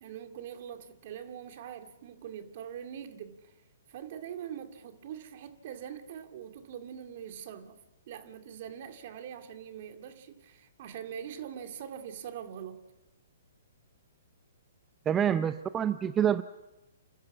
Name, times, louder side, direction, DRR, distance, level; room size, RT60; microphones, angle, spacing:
voice 1, 0.0-3.5 3.9-7.8 8.1-12.8, right 9 dB, 50° right, 2.2 m, -43 dB
voice 2, 15.1-16.4, right 9 dB, 20° right, 0.6 m, -27 dB
29.5 x 13.0 x 7.3 m
hypercardioid pair, 125°, 0 cm